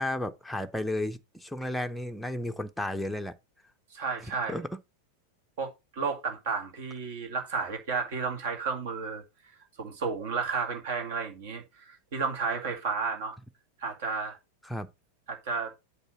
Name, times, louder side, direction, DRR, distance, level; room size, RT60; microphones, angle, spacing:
voice 1, 0.0-3.3 4.5-4.7 14.6-14.9, left 1 dB, 5° left, 0.7 m, -33 dB
voice 2, 3.9-4.6 5.6-9.2 9.8-13.4 13.8-14.4 15.3-15.7, right 5 dB, 55° right, 2.0 m, -32 dB
8.2 x 3.4 x 6.1 m
figure-of-eight pair, 90°, 0 cm